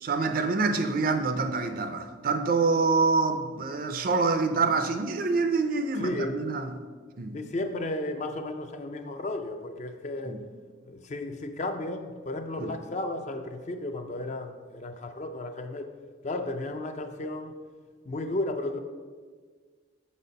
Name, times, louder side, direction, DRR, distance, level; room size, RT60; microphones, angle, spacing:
voice 1, 0.0-6.7 7.2-7.4 10.3-10.4 12.6-12.7, right 4 dB, 45° right, 8 dB, 0.5 m, -26 dB
voice 2, 5.9-6.5 7.3-10.4 10.8-15.9 16.2-17.6 18.1-18.8, left 2 dB, 35° left, 7 dB, 0.4 m, -34 dB
6.9 x 4.2 x 5.2 m, 1.5 s
head